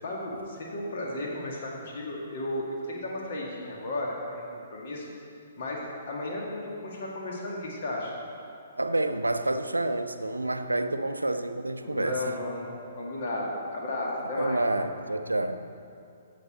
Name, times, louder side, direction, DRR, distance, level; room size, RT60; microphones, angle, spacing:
voice 1, 0.0-4.5 4.7-5.1 5.6-8.1 11.8-14.6, left 1 dB, 50° left, 2.0 m, -34 dB
voice 2, 8.8-12.3 14.4-15.7, right 2 dB, 85° right, 0.5 m, -28 dB
16.0 x 6.8 x 4.4 m
figure-of-eight pair, 125°, 0 cm